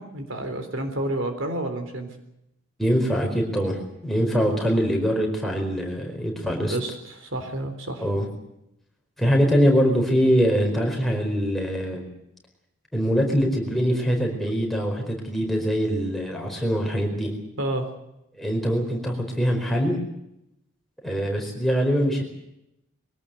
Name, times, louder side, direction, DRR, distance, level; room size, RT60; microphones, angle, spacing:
voice 1, 0.0-2.1 6.7-8.0 17.6-17.8, right 1 dB, 65° right, 7 dB, 3.7 m, -29 dB
voice 2, 2.8-6.8 8.0-8.3 9.2-12.1 12.9-17.3 18.3-20.0 21.0-22.2, equal, ahead, 0 dB, 4.7 m, -23 dB
23.0 x 18.0 x 7.9 m, 0.83 s
head